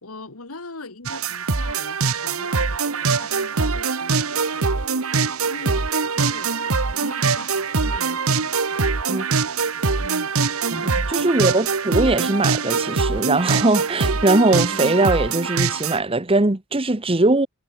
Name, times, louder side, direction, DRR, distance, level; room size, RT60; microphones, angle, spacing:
voice 1, 0.0-4.8 5.4-6.6 6.9-8.5 10.0-10.3 11.1-11.6, left 2 dB, 90° left, 2.4 m, -40 dB
sound 1, 1.1-16.0, right 4 dB, 80° right, 1.3 m, -23 dB
voice 2, 10.7-17.5, right 2 dB, 25° right, 1.2 m, -20 dB
head